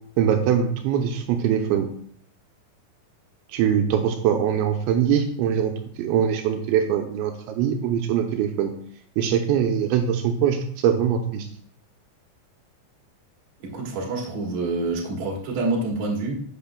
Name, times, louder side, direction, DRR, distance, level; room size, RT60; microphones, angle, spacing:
voice 1, 0.2-1.9 3.5-5.7 6.0-8.7 9.2-10.6 10.8-11.5, right 8 dB, 80° right, 4 dB, 2.9 m, -22 dB
voice 2, 13.6-16.4, right 3 dB, 55° right, -2 dB, 2.3 m, -27 dB
14.0 x 5.8 x 2.2 m, 0.62 s
omnidirectional pair, 5.3 m